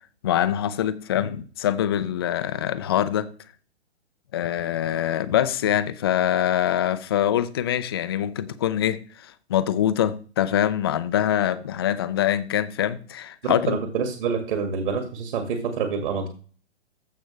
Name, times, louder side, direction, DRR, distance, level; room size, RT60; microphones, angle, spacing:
voice 1, 0.2-3.3 4.3-13.8, left 10 dB, 25° left, 0.3 m, -24 dB
voice 2, 13.4-16.3, right 6 dB, 50° right, 2.0 m, -27 dB
14.5 x 5.3 x 3.2 m
figure-of-eight pair, 130°, 34 cm